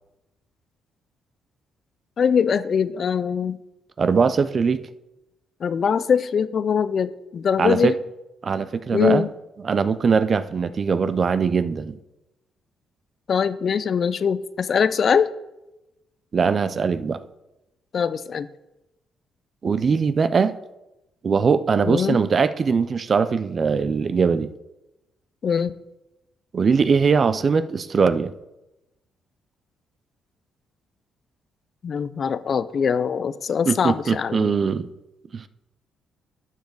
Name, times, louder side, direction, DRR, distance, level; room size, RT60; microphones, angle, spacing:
voice 1, 2.2-3.6 5.6-7.9 8.9-9.3 13.3-15.3 17.9-18.5 21.8-22.2 25.4-25.8 31.8-34.5, left 7 dB, 50° left, 15 dB, 0.5 m, -22 dB
voice 2, 4.0-4.8 7.6-7.9 8.4-9.2 9.6-12.0 16.3-17.2 19.6-20.5 21.2-24.5 26.5-28.3 33.7-34.9 35.3-35.5, right 5 dB, 45° right, 14 dB, 0.5 m, -21 dB
11.5 x 7.2 x 3.9 m, 0.96 s
cardioid pair, 90°, 0 cm